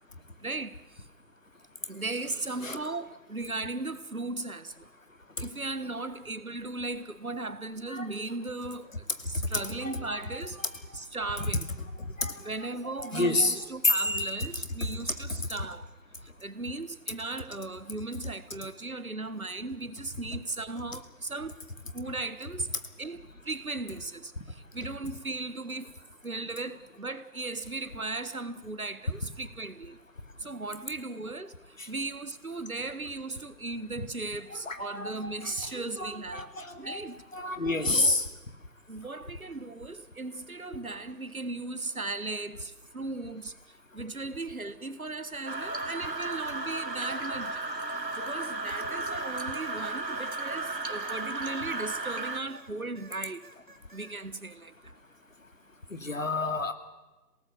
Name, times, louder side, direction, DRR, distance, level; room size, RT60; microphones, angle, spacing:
voice 1, 0.4-0.8 1.9-4.7 5.4-8.9 9.2-10.6 10.9-11.7 12.4-15.9 16.4-21.6 21.9-22.7 23.0-25.9 26.2-30.0 30.4-31.5 31.9-36.5 36.8-37.2 37.9-38.2 38.9-43.5 43.9-47.7 48.2-53.4 53.9-54.7, right 3 dB, 55° right, 1.6 m, -37 dB
voice 2, 9.8-10.2 11.4-11.5 12.2-12.3 13.1-14.5 34.6-37.0 37.3-38.3 49.1-49.2 49.7-49.8 55.9-56.7, left 2 dB, 50° left, 2.6 m, -29 dB
sound 1, 45.5-52.4, right 2 dB, 75° right, 2.4 m, -34 dB
sound 2, 48.7-52.7 53.0-54.2, right 2 dB, 30° right, 2.4 m, -54 dB
27.0 x 18.5 x 8.3 m
figure-of-eight pair, 170°, 50 cm